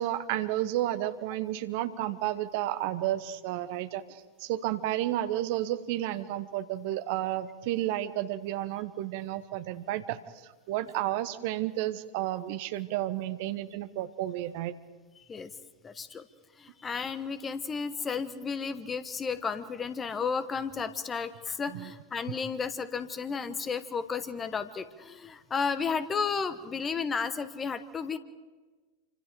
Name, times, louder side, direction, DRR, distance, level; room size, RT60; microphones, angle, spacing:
voice 1, 0.0-14.7 21.7-21.9, right 14 dB, 50° right, 12 dB, 1.1 m, -32 dB
voice 2, 15.8-16.2 16.6-28.2, left 5 dB, 20° left, 13 dB, 1.2 m, -33 dB
28.0 x 25.5 x 5.0 m, 1.3 s
figure-of-eight pair, 90°, 0 cm